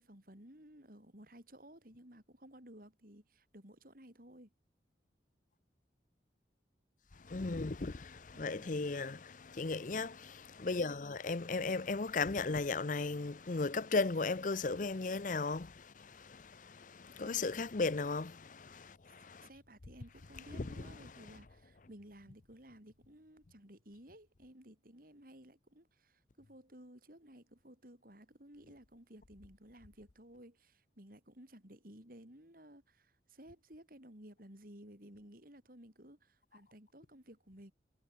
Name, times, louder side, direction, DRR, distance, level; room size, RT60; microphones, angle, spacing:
voice 1, 0.0-4.5 8.3-8.7 17.2-17.5 19.4-37.7, right 1 dB, 50° right, 5.5 m, -56 dB
voice 2, 7.2-19.5 20.5-20.9, left 3 dB, 45° left, 0.7 m, -36 dB
head